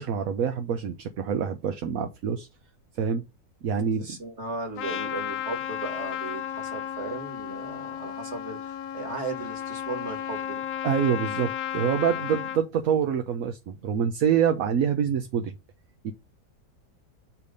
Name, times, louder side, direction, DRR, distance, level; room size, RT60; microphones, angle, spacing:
voice 1, 0.0-2.5 3.0-3.2 3.6-4.1 10.8-15.5 16.0-16.1, right 7 dB, 65° right, 1.2 m, -26 dB
voice 2, 4.0-10.7 12.1-12.3, right 3 dB, 45° right, 2.2 m, -36 dB
Trumpet, 4.8-12.6, left 10 dB, 70° left, 1.1 m, -33 dB
8.4 x 3.4 x 5.2 m
omnidirectional pair, 1.7 m